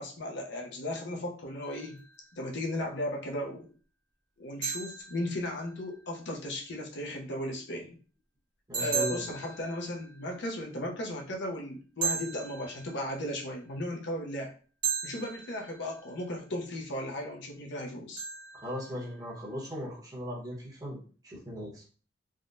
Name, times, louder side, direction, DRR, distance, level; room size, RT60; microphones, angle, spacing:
voice 1, 0.0-2.0 2.3-3.7 4.4-8.0 8.8-14.5 15.0-18.2, left 1 dB, 65° left, 0 dB, 0.7 m, -36 dB
sound 1, 1.6-2.4 4.6-6.0 8.7-10.5 12.0-13.4 14.8-16.2 18.2-19.4, right 5 dB, 45° right, 1.1 m, -37 dB
voice 2, 8.7-9.3 18.5-21.0 21.2-21.8, equal, 20° right, -4 dB, 1.0 m, -38 dB
3.5 x 2.2 x 2.6 m, 0.39 s
head